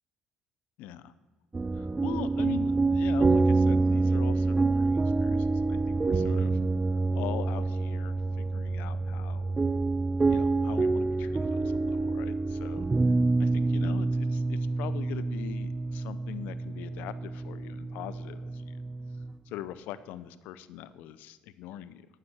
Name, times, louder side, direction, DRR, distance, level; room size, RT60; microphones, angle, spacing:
voice 1, 0.8-1.1 1.7-6.6 7.1-9.5 10.3-12.9 13.4-18.8 19.5-22.1, left 11 dB, 80° left, 15 dB, 0.5 m, -42 dB
sound 1, 1.5-19.4, right 3 dB, 25° right, 0.4 m, -27 dB
11.5 x 9.3 x 4.3 m, 1.4 s
supercardioid pair, 80°, 3 cm